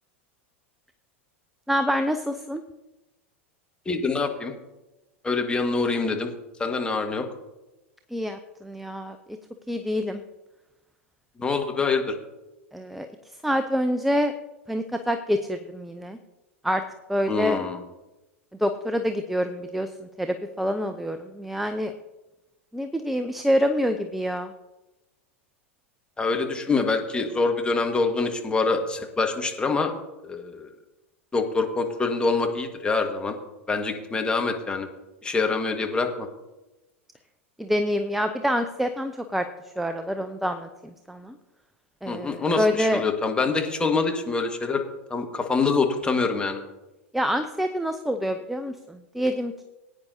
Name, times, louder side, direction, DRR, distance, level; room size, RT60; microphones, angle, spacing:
voice 1, 1.7-2.6 8.1-9.2 9.7-10.2 12.7-13.1 13.4-14.3 14.7-16.2 16.6-16.8 17.1-17.6 18.6-21.9 22.7-24.5 37.6-39.5 39.8-41.4 42.0-43.0 47.1-49.6, equal, ahead, 8 dB, 0.6 m, -26 dB
voice 2, 3.8-4.5 5.2-6.3 6.6-7.2 11.4-12.2 17.3-17.8 26.2-29.9 30.2-30.7 31.3-33.4 33.7-34.9 35.2-36.3 42.1-44.8 45.1-46.6, left 4 dB, 15° left, 3 dB, 1.6 m, -25 dB
18.5 x 9.5 x 2.8 m, 1.0 s
figure-of-eight pair, 90°, 7 cm